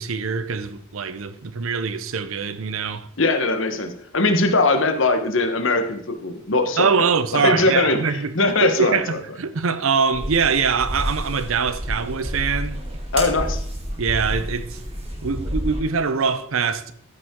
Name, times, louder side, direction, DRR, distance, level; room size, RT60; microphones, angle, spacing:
voice 1, 0.0-3.1 6.8-8.3 8.6-12.8 14.0-14.8 15.2-16.9, right 5 dB, 75° right, 0.6 m, -23 dB
voice 2, 3.2-6.9 7.3-9.0 13.1-13.6, left 2 dB, 60° left, 1.1 m, -20 dB
sound 1, 10.1-15.8, equal, 30° right, 2.1 m, -29 dB
13.5 x 5.6 x 3.7 m
head